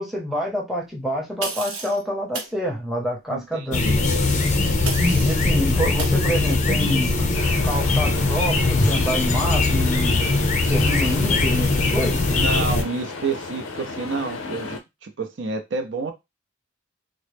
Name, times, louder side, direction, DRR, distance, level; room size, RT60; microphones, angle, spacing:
voice 1, 0.0-3.8 5.2-7.1 7.6-10.2 10.7-12.2, equal, ahead, -2 dB, 0.7 m, -27 dB
sound 1, 1.4-2.0 2.3-2.6 4.9-5.5 6.0-6.2, right 4 dB, 80° right, 0.9 m, -31 dB
voice 2, 3.3-4.1 12.3-16.1, right 4 dB, 60° right, 5 dB, 0.6 m, -29 dB
sound 2, 3.7-12.8, left 3 dB, 35° left, 0.5 m, -21 dB
sound 3, 7.3-14.8, left 3 dB, 85° left, 0.6 m, -34 dB
3.7 x 2.1 x 3.3 m, 0.21 s
head